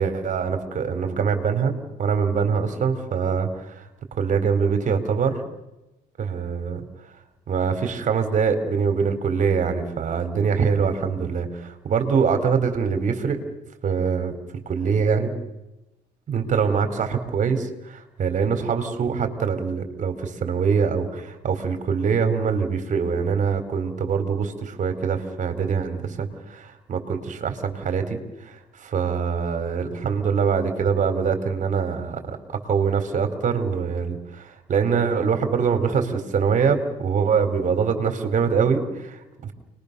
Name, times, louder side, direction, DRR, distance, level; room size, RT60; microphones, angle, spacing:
voice 1, 0.0-1.7 2.0-3.8 4.1-5.4 6.2-6.8 7.5-13.4 13.8-14.4 14.7-15.3 16.3-32.4 32.6-39.5, right 6 dB, 45° right, 7 dB, 4.5 m, -24 dB
30.0 x 22.5 x 7.0 m, 0.96 s
cardioid pair, 110°, 17 cm